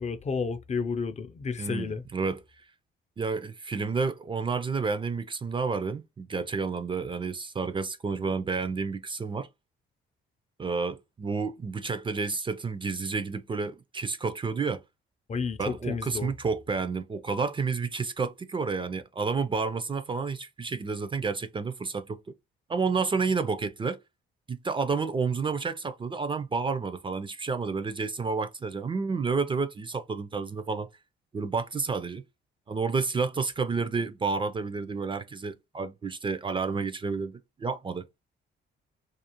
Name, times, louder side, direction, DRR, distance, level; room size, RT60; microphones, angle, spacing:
voice 1, 0.0-2.0 15.3-16.3, left 5 dB, 35° left, 0.5 m, -31 dB
voice 2, 1.6-2.4 3.2-9.5 10.6-14.8 15.6-22.2 22.7-24.0 24.5-30.9 31.3-32.2 32.7-38.1, right 4 dB, 25° right, 0.4 m, -30 dB
2.4 x 2.4 x 2.9 m
cardioid pair, 90°, 20 cm